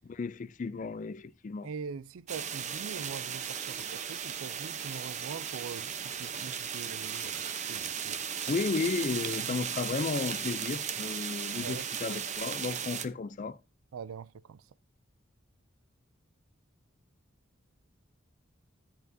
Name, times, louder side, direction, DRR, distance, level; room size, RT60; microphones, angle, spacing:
voice 1, 0.1-1.7 8.5-13.6, left 4 dB, 40° left, 0.4 m, -33 dB
voice 2, 1.6-8.2 9.4-9.6 11.6-11.8 13.9-14.6, right 6 dB, 80° right, 0.4 m, -43 dB
sound 1, 2.3-13.1, right 8 dB, 35° right, 0.7 m, -36 dB
sound 2, 3.4-12.3, right 7 dB, 55° right, 1.7 m, -48 dB
10.5 x 8.7 x 2.7 m
head